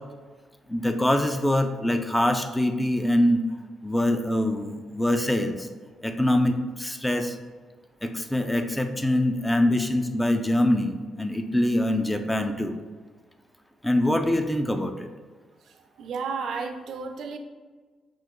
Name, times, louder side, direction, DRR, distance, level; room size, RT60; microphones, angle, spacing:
voice 1, 0.7-3.4 3.8-5.7 6.0-7.4 8.0-12.8 13.8-15.1, left 1 dB, 10° left, 7 dB, 0.4 m, -24 dB
voice 2, 15.7-17.4, right 5 dB, 65° right, 6 dB, 0.4 m, -33 dB
5.6 x 2.5 x 3.0 m, 1.4 s
cardioid pair, 90°, 0 cm